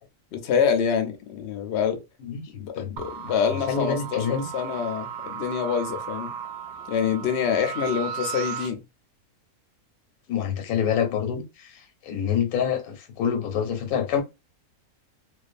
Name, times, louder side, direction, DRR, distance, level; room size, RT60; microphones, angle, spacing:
voice 1, 0.3-2.0 2.5-6.3 6.9-8.8, left 7 dB, 65° left, 0.7 m, -26 dB
voice 2, 2.2-2.9 3.7-4.5 10.3-11.7 12.0-14.2, left 8 dB, 80° left, 1.1 m, -26 dB
sound 1, 3.0-8.7, right 8 dB, 65° right, 0.7 m, -35 dB
2.5 x 2.3 x 2.4 m
omnidirectional pair, 1.5 m